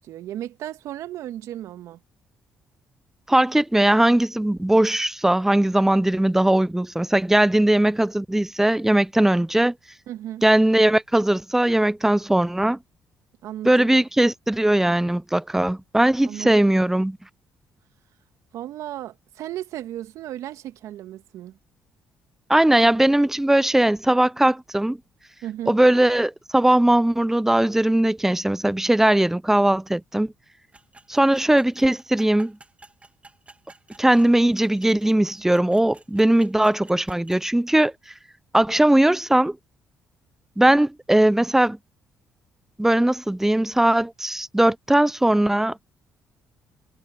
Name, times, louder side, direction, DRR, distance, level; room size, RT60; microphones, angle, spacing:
voice 1, 0.0-2.0 10.1-10.4 13.4-13.9 16.2-16.8 18.5-21.6 25.4-25.8, right 12 dB, 70° right, 2.0 m, -35 dB
voice 2, 3.3-9.7 10.4-12.8 13.6-17.2 22.5-25.0 25.7-30.3 31.1-32.6 34.0-37.9 38.5-39.6 40.6-41.8 42.8-45.8, right 1 dB, 5° right, 0.6 m, -19 dB
sound 1, 30.7-37.4, right 3 dB, 25° right, 2.9 m, -50 dB
hypercardioid pair, 55°, 6 cm